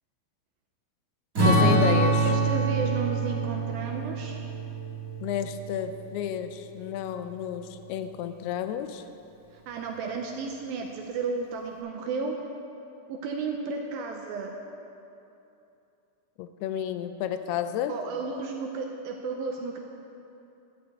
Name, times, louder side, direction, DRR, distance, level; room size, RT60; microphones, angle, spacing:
voice 1, 1.4-2.3 5.2-9.0 16.4-18.0, left 10 dB, 85° left, 10 dB, 2.4 m, -31 dB
Strum, 1.4-6.0, right 2 dB, 30° right, 1.6 m, -25 dB
voice 2, 2.3-4.4 9.7-12.3 13.1-14.5 17.9-19.8, right 4 dB, 80° right, 2 dB, 2.2 m, -33 dB
12.0 x 6.5 x 8.2 m, 2.8 s
omnidirectional pair, 4.7 m